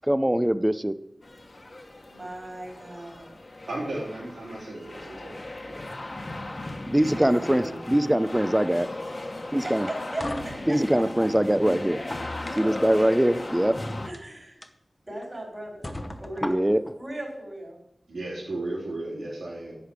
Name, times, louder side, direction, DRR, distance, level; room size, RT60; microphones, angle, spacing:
voice 1, 0.0-0.9 6.9-8.9 9.5-9.9 10.7-12.0 12.6-13.7 16.4-16.8, right 1 dB, 10° right, 13 dB, 0.6 m, -22 dB
sound 1, 1.2-14.1, left 2 dB, 40° left, 1.3 m, -37 dB
voice 2, 2.0-3.4 7.1-7.9 9.6-10.8 11.2-11.3 14.0-14.6 15.1-15.9 16.2-17.8, right 1 dB, 30° right, 0 dB, 4.9 m, -38 dB
voice 3, 3.7-5.3 18.1-19.7, right 2 dB, 90° right, -6 dB, 3.6 m, -34 dB
sound 2, 9.7-11.3 11.9-13.0 14.0-14.2 14.6-14.7 15.2-15.3 15.8-16.9, left 1 dB, 20° left, 0.9 m, -36 dB
11.0 x 5.1 x 8.1 m, 0.80 s
wide cardioid pair, 70°, 0 cm